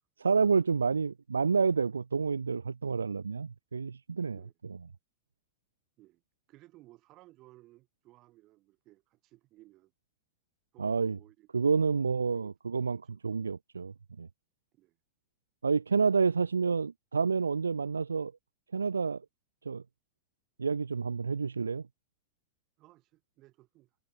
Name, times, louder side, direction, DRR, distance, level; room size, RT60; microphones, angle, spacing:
voice 1, 0.2-4.4 10.8-11.2 11.5-14.3 15.6-18.3 18.7-19.2 19.7-19.8 20.6-21.8, right 5 dB, 75° right, 0.4 m, -29 dB
voice 2, 6.5-9.9 10.7-12.5 12.9-13.0 14.7-15.0 22.8-23.9, right 18 dB, 40° right, 5.9 m, -59 dB
figure-of-eight pair, 90°, 0 cm